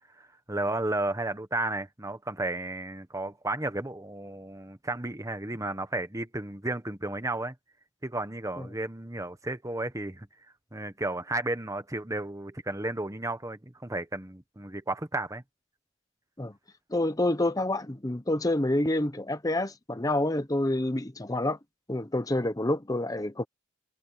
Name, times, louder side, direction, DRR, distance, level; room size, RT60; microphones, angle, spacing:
voice 1, 0.1-7.6 8.0-10.3 10.7-15.4, right 2 dB, 15° right, 1.4 m, -33 dB
voice 2, 16.9-21.6 21.9-23.4, left 1 dB, 20° left, 1.0 m, -28 dB
head